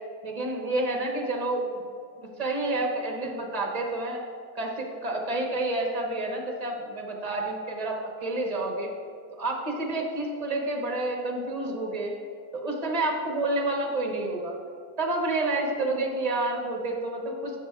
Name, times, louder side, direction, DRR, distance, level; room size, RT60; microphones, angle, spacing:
voice 1, 0.2-1.8 2.4-4.2 4.5-8.9 9.4-12.1 12.5-14.6 15.0-17.6, right 2 dB, 30° right, 0 dB, 1.0 m, -29 dB
12.5 x 6.4 x 2.4 m, 2.3 s
omnidirectional pair, 1.8 m